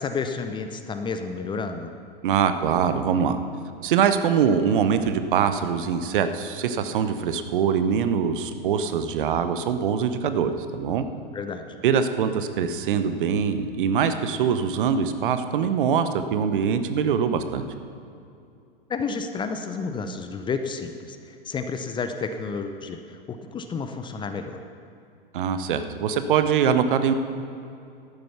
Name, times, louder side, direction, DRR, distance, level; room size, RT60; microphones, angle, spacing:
voice 1, 0.0-1.9 11.3-11.8 18.9-24.6, left 5 dB, 15° left, 7 dB, 0.6 m, -31 dB
voice 2, 2.2-3.4 3.8-11.0 11.8-17.6 25.3-27.1, right 7 dB, 60° right, 10 dB, 0.9 m, -23 dB
12.0 x 9.3 x 5.8 m, 2.5 s
figure-of-eight pair, 100°, 30 cm